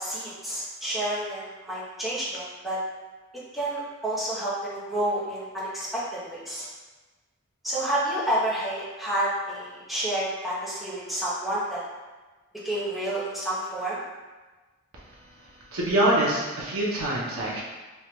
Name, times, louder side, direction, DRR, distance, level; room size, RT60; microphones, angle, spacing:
voice 1, 0.0-2.8 3.5-6.7 7.6-11.8 12.6-14.0, right 1 dB, ahead, -10 dB, 0.8 m, -29 dB
voice 2, 15.4-17.6, right 1 dB, 90° right, -4 dB, 0.7 m, -25 dB
3.2 x 2.3 x 3.0 m, 1.2 s
head